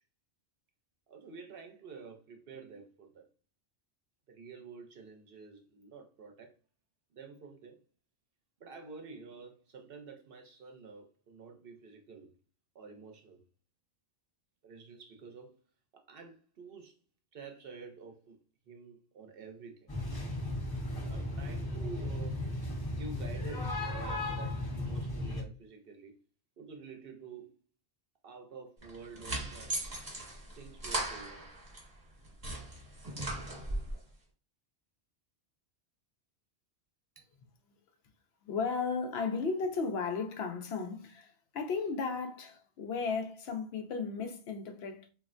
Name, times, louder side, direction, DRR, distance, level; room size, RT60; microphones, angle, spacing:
voice 1, 1.1-3.2 4.3-6.5 7.1-7.8 8.6-12.3 12.7-13.4 14.6-15.6 15.9-16.9 17.3-18.4 18.7-19.9 21.0-22.4 23.0-26.1 26.6-27.6 28.2-29.8 30.6-31.5 37.2-37.3, right 5 dB, 65° right, 0.8 m, -49 dB
sound 1, 19.9-25.4, left 1 dB, 25° left, 0.7 m, -35 dB
sound 2, 28.8-31.9 32.2-34.0, right 2 dB, 35° right, 1.1 m, -38 dB
voice 2, 38.4-45.1, left 4 dB, 75° left, 0.8 m, -35 dB
3.1 x 2.4 x 2.5 m
omnidirectional pair, 1.1 m